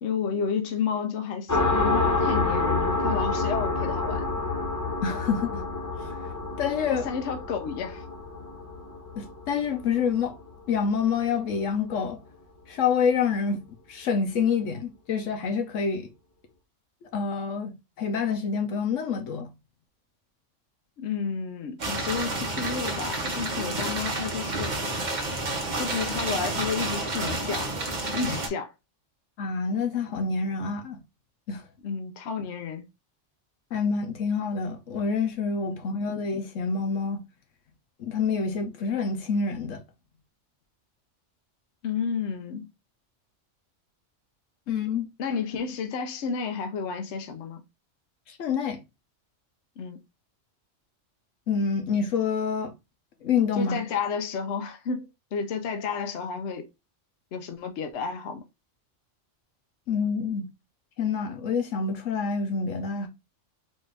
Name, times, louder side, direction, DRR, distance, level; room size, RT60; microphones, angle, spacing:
voice 1, 0.0-4.2 6.9-8.0 21.0-24.7 25.8-27.7 28.1-28.7 31.8-32.9 41.8-42.7 45.2-47.6 49.8-50.0 53.6-56.7 57.3-58.4, left 6 dB, 65° left, 0.9 m, -31 dB
sound 1, 1.5-10.8, left 3 dB, 20° left, 0.5 m, -28 dB
voice 2, 5.0-5.6 6.0-6.1 6.6-7.1 9.2-10.4 10.7-12.2 12.7-13.6 13.9-16.1 17.1-19.5 29.4-31.0 31.5-31.6 33.7-37.2 38.0-39.8 44.7-45.1 48.3-48.8 51.5-52.7 53.2-53.8 59.9-60.5 61.0-63.1, left 5 dB, 85° left, 1.2 m, -27 dB
sound 2, 21.8-28.5, right 2 dB, 40° right, 0.8 m, -30 dB
4.1 x 2.5 x 3.2 m
omnidirectional pair, 1.3 m